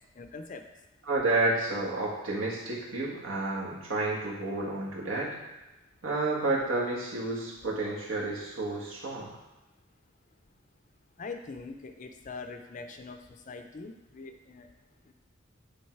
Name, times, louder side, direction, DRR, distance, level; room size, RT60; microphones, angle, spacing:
voice 1, 0.2-0.7 11.2-14.7 15.1-15.2, left 4 dB, 40° left, 6 dB, 0.5 m, -43 dB
voice 2, 1.0-5.4 6.0-9.3, right 2 dB, 80° right, -3 dB, 1.7 m, -30 dB
8.5 x 3.6 x 4.6 m, 1.0 s
head